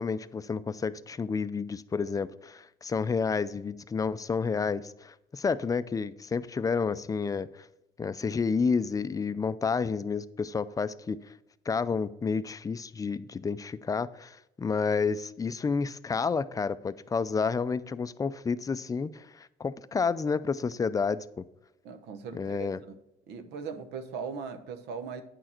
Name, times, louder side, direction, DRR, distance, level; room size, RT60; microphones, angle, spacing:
voice 1, 0.0-7.7 8.0-11.2 11.7-21.4 22.3-22.8, left 5 dB, 20° left, 15 dB, 0.4 m, -30 dB
voice 2, 21.8-23.0 23.3-25.2, right 6 dB, 80° right, 9 dB, 1.0 m, -39 dB
9.2 x 6.4 x 4.4 m, 0.87 s
cardioid pair, 110°, 17 cm